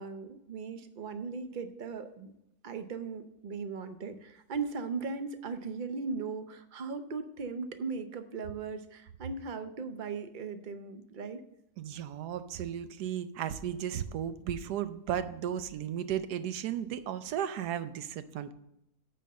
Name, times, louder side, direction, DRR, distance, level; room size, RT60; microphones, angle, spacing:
voice 1, 0.0-2.3 2.6-11.4, right 4 dB, 45° right, 9 dB, 0.6 m, -38 dB
voice 2, 11.8-18.5, right 9 dB, 85° right, 12 dB, 1.2 m, -35 dB
9.1 x 4.5 x 7.4 m, 0.84 s
omnidirectional pair, 1.7 m